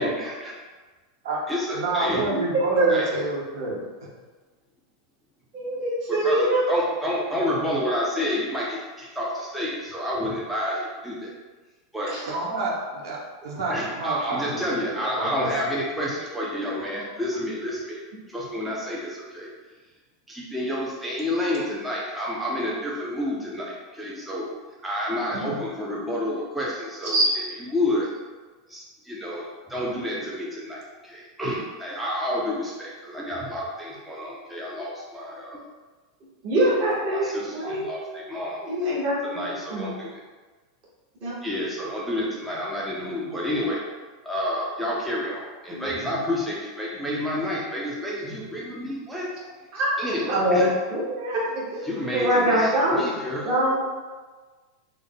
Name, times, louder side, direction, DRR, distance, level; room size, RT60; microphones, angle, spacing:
voice 1, 0.0-0.5 1.5-2.2 2.9-3.2 6.1-11.3 11.9-12.1 13.6-18.0 18.3-19.5 20.3-24.5 24.8-28.2 28.7-35.7 36.6-38.6 39.2-40.2 41.4-43.8 44.2-49.3 50.0-50.7 51.8-53.5, left 1 dB, ahead, -6 dB, 0.4 m, -29 dB
voice 2, 1.7-3.8 12.3-13.2 13.4-14.6 14.9-15.5, right 2 dB, 80° right, -4 dB, 1.0 m, -28 dB
voice 3, 2.3-2.9 5.5-6.8 12.1-12.2 25.4-25.5 27.1-27.2 36.4-37.9 38.6-39.4 39.7-39.9 41.2-41.4 45.7-45.8 49.7-49.9 50.3-53.0 53.5-53.8, right 1 dB, 35° right, -6 dB, 1.0 m, -24 dB
3.5 x 2.1 x 3.7 m, 1.3 s
supercardioid pair, 175°, 2 cm